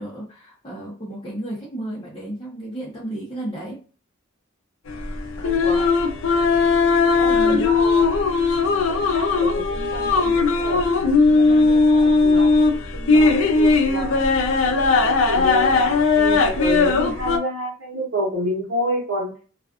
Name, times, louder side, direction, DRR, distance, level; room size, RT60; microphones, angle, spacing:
voice 1, 0.0-3.8 7.3-7.7, right 1 dB, 25° left, -7 dB, 0.7 m, -32 dB
sound 1, 4.9-17.4, left 4 dB, 90° left, 0.5 m, -18 dB
voice 2, 5.4-5.9 7.0-8.1 8.6-12.7 12.9-14.2 14.6-19.3, equal, 85° right, -5 dB, 0.9 m, -29 dB
2.4 x 2.3 x 2.3 m, 0.38 s
head